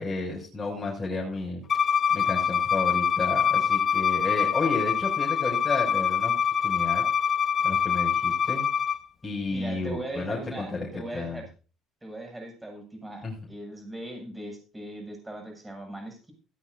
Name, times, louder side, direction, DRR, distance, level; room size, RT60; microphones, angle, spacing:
voice 1, 0.0-1.6 2.1-7.0 7.6-8.7 9.2-10.9 11.1-11.4 13.2-13.3, left 3 dB, 20° left, -3 dB, 7.1 m, -32 dB
Bowed string instrument, 1.7-9.0, left 7 dB, 45° left, 1.6 m, -25 dB
voice 2, 9.5-11.5 12.0-16.3, right 1 dB, 10° right, 3 dB, 7.8 m, -39 dB
17.0 x 15.0 x 2.8 m, 0.35 s
cardioid pair, 90°, 0 cm